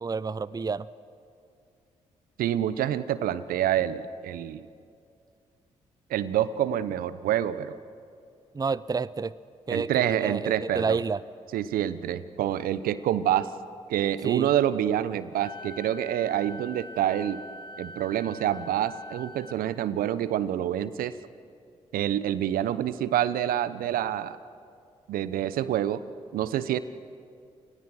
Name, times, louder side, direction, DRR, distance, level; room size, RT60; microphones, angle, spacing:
voice 1, 0.0-0.9 8.5-9.3 9.7-11.2 14.2-14.5, right 4 dB, 25° right, 19 dB, 0.6 m, -29 dB
voice 2, 2.4-4.6 6.1-7.8 9.7-11.0 11.5-13.5 13.9-17.4 17.8-21.2 21.9-24.4 25.1-26.0 26.3-26.8, right 11 dB, 70° right, 16 dB, 0.8 m, -27 dB
Wind instrument woodwind instrument, 15.4-19.6, left 1 dB, 30° left, 2.5 m, -44 dB
30.0 x 19.5 x 6.3 m, 2.4 s
hypercardioid pair, 40°, 15 cm